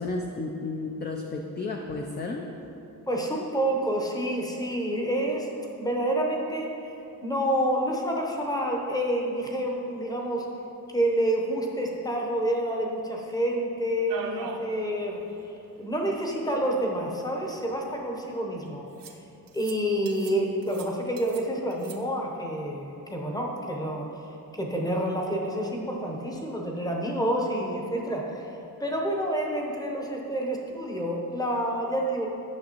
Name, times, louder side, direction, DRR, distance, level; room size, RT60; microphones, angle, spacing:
voice 1, 0.0-2.5, left 3 dB, 30° left, 1 dB, 0.4 m, -32 dB
voice 2, 3.1-6.9 7.2-10.5 10.9-15.2 15.8-18.8 19.5-24.1 24.5-28.5 28.8-32.3, right 1 dB, 10° left, 0 dB, 0.8 m, -28 dB
sound 1, 14.1-14.7 15.1-15.2 15.4-15.5 16.6-16.7 17.4-18.1 19.0-19.2 19.5-19.8 20.1-20.4 20.6-21.4 21.7-22.0, right 6 dB, 70° right, 0.6 m, -40 dB
8.8 x 6.1 x 2.9 m, 3.0 s
wide cardioid pair, 135°, 35 cm